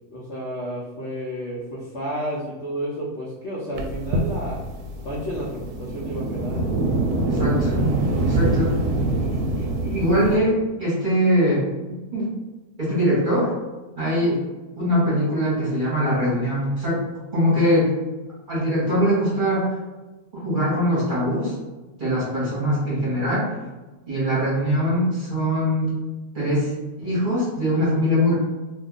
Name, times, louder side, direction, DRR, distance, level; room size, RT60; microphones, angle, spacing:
voice 1, 0.1-4.6 5.0-6.6, equal, 60° left, -6 dB, 0.7 m, -31 dB
sound 1, 3.7-10.4, right 2 dB, 75° right, 1.0 m, -24 dB
voice 2, 7.3-7.7 8.2-9.4 9.8-11.6 12.1-12.3 12.8-13.5 14.0-14.4 14.8-17.1 17.3-17.9 18.5-19.7 20.3-21.5 22.0-23.5 24.1-26.0 26.3-26.7 27.0-28.3, equal, 35° right, -8 dB, 1.0 m, -22 dB
2.8 x 2.4 x 3.7 m, 1.2 s
omnidirectional pair, 1.8 m